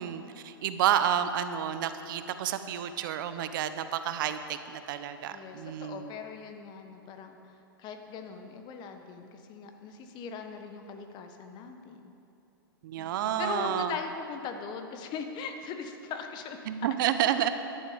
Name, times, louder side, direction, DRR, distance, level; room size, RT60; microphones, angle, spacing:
voice 1, 0.0-6.1 12.8-13.9 16.7-17.5, right 10 dB, 60° right, 10 dB, 0.8 m, -30 dB
voice 2, 5.3-12.1 13.0-16.9, left 6 dB, 35° left, 6 dB, 1.3 m, -40 dB
14.0 x 11.5 x 5.1 m, 2.9 s
hypercardioid pair, 115°, 12 cm